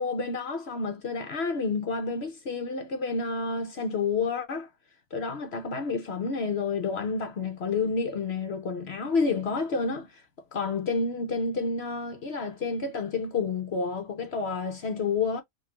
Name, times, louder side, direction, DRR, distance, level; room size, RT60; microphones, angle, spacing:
voice 1, 0.0-4.7 5.1-10.2 10.5-15.4, left 4 dB, 55° left, 0.7 m, -29 dB
3.9 x 2.6 x 2.8 m
omnidirectional pair, 1.8 m